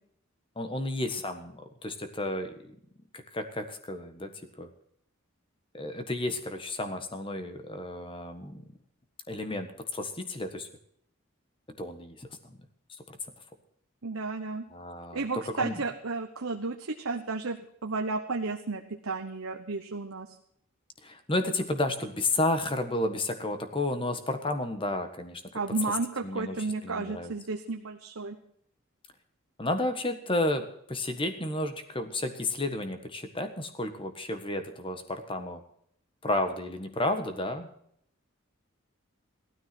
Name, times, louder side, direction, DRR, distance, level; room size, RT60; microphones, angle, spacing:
voice 1, 0.5-2.8 3.3-4.3 4.6-4.7 5.7-8.6 9.3-10.7 11.8-12.6 12.9-13.0 14.7-15.8 21.0-25.4 26.2-27.3 29.6-35.6 36.2-37.7, left 2 dB, 25° left, 8 dB, 1.4 m, -32 dB
voice 2, 14.0-14.6 15.1-20.4 25.5-28.4, right 3 dB, 70° right, 4 dB, 1.0 m, -33 dB
15.5 x 13.0 x 6.1 m, 0.68 s
head